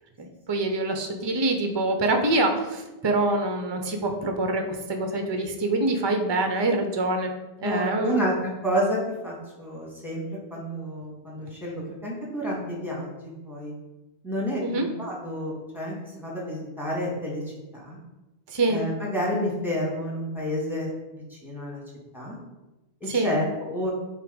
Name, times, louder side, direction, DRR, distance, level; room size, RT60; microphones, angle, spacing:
voice 1, 0.2-7.3 7.6-8.3 14.6-14.9 18.5-18.8 23.1-23.4, right 2 dB, 25° right, 4 dB, 0.7 m, -25 dB
voice 2, 7.6-8.3 8.6-10.2 10.5-13.7 14.2-17.4 17.7-18.0 18.7-21.8 22.1-22.4 23.0-23.9, equal, ahead, -4 dB, 2.1 m, -30 dB
8.1 x 2.8 x 5.2 m, 1.0 s
omnidirectional pair, 1.1 m